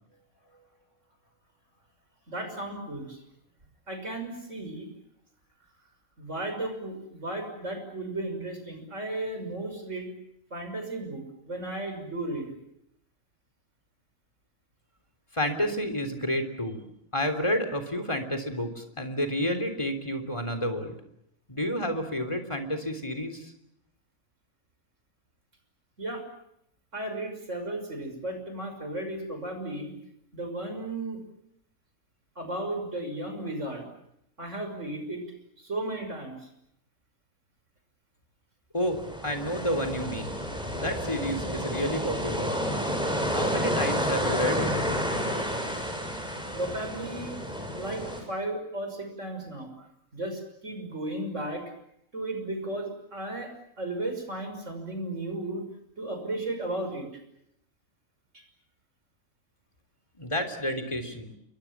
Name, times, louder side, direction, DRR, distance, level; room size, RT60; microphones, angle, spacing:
voice 1, 2.3-3.2 3.9-4.9 6.2-10.1 10.5-12.5 26.0-26.2 26.9-29.9 30.3-31.2 32.4-33.9 34.4-35.2 35.6-36.5 46.6-47.4 47.8-48.0 48.3-49.7 50.1-51.6 52.1-55.6 56.0-57.1 58.3-58.4, right 1 dB, 60° right, 6 dB, 6.4 m, -34 dB
voice 2, 15.3-21.0 21.5-23.5 38.7-40.4 40.7-42.5 43.3-44.7 60.2-61.3, equal, 20° left, 7 dB, 3.5 m, -30 dB
sound 1, 38.8-48.2, equal, 5° right, 6.9 m, -30 dB
29.5 x 23.0 x 7.4 m, 0.77 s
omnidirectional pair, 1.4 m